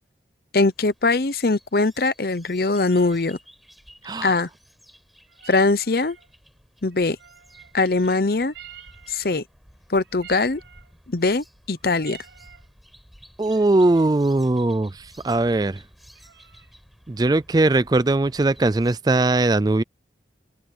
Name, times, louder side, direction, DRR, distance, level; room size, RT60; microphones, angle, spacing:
voice 1, 0.5-3.4 4.2-4.5 5.5-6.2 6.8-7.2 7.7-8.5 9.1-9.4 9.9-10.6 11.1-12.2, left 3 dB, 55° left, 0.8 m, -21 dB
sound 1, 0.6-19.0, equal, ahead, 4.7 m, -53 dB
sound 2, 2.6-3.3 5.2-6.3 6.9-7.8 8.4-9.4 10.0-10.9 11.6-12.7 13.4-14.2 16.1-16.8, right 9 dB, 80° right, 6.6 m, -48 dB
voice 2, 13.4-15.8 17.1-19.8, right 2 dB, 20° right, 0.4 m, -20 dB
head